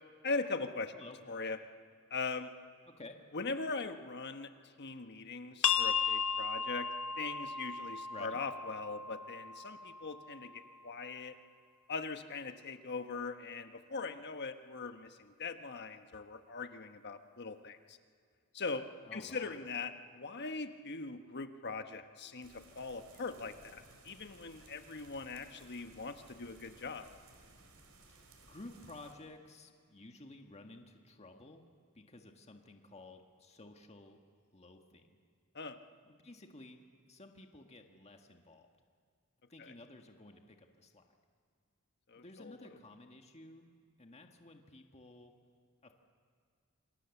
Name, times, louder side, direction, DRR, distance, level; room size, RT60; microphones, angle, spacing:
voice 1, 0.2-0.9 1.3-1.6 2.1-2.5 3.3-6.9 7.2-11.4 11.9-18.0 18.5-27.1 35.5-35.8 39.6-39.7 42.1-42.5, left 4 dB, 50° left, 7 dB, 1.3 m, -41 dB
voice 2, 2.9-3.2 8.1-8.4 19.0-19.5 28.1-31.7 31.9-34.2 34.5-35.1 36.0-38.7 39.5-41.0 42.1-43.6 44.0-45.3 45.8-45.9, left 2 dB, 30° left, 4 dB, 1.7 m, -53 dB
sound 1, 5.6-11.0, left 7 dB, 75° left, 1.1 m, -36 dB
sound 2, 22.4-29.1, right 3 dB, 90° right, 4.2 m, -60 dB
27.5 x 25.5 x 7.2 m, 2.2 s
head